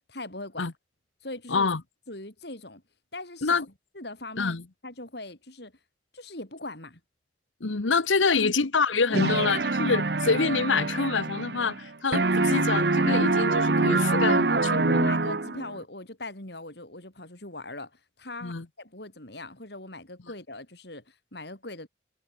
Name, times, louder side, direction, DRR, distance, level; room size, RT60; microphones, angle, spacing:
voice 1, 0.1-0.7 1.2-1.7 2.1-2.8 3.1-3.7 3.9-4.6 4.8-5.7 6.1-7.0 8.2-8.5 9.0-9.4 13.9-21.9, left 2 dB, 60° left, 5.0 m, -39 dB
voice 2, 1.5-1.8 3.4-3.7 4.4-4.6 7.6-14.5 14.9-15.0 18.4-18.7, left 4 dB, 85° left, 1.1 m, -26 dB
sound 1, 9.1-11.9 12.1-15.7, right 3 dB, 55° right, 1.0 m, -25 dB
head